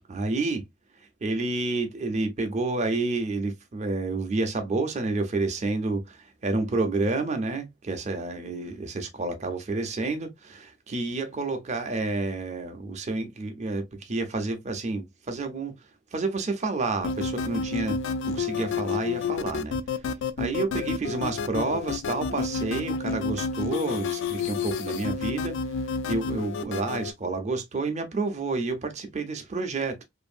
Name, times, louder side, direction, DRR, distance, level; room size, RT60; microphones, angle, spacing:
voice 1, 0.1-0.6 1.2-15.7 16.1-18.0 18.2-19.8 20.4-30.0, right 3 dB, 35° right, 0.5 m, -29 dB
sound 1, 17.0-27.1, left 5 dB, 60° left, 0.3 m, -30 dB
2.5 x 2.5 x 2.4 m
head